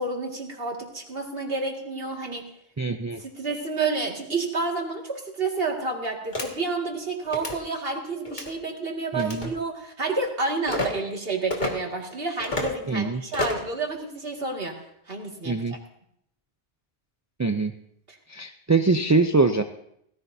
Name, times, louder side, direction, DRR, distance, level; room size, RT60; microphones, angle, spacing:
voice 1, 0.0-2.4 3.2-14.8 15.1-15.5 18.1-18.2, right 3 dB, 65° right, 0 dB, 2.4 m, -29 dB
voice 2, 2.8-3.2 9.1-9.5 12.9-13.2 15.4-15.7 17.4-17.7 18.3-19.6, right 3 dB, 30° right, 7 dB, 0.3 m, -23 dB
sound 1, 6.3-6.5 7.3-7.6 8.2-8.5 9.2-9.5 10.7-10.9 11.5-11.7 12.4-12.7 13.3-13.7, left 2 dB, 45° left, 2.2 m, -29 dB
17.5 x 15.5 x 2.7 m, 0.74 s
omnidirectional pair, 1.1 m